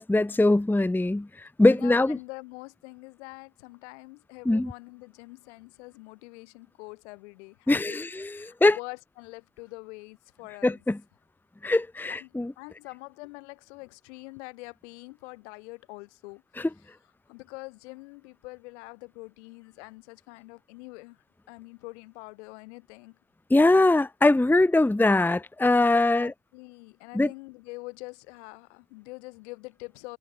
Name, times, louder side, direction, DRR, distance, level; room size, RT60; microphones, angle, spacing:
voice 1, 0.0-2.2 4.4-4.7 7.7-8.8 10.6-11.0 11.6-12.5 16.6-16.7 23.5-26.3 27.1-27.3, left 2 dB, 5° left, 0.9 m, -22 dB
voice 2, 1.7-8.0 8.3-10.8 12.0-16.7 17.3-21.2 21.5-23.2 25.8-30.2, left 25 dB, 80° left, 7.9 m, -44 dB
hypercardioid pair, 70°, 34 cm